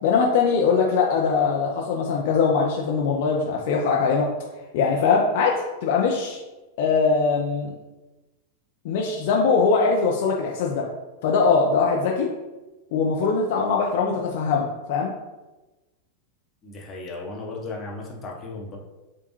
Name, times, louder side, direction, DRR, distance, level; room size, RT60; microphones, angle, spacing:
voice 1, 0.0-4.3 4.7-6.4 6.8-7.7 8.8-10.9 11.2-12.3 12.9-15.1, left 5 dB, 50° left, -1 dB, 0.5 m, -21 dB
voice 2, 16.6-18.8, left 3 dB, 25° left, -2 dB, 0.9 m, -35 dB
5.1 x 2.3 x 3.0 m, 1.1 s
figure-of-eight pair, 90°, 0 cm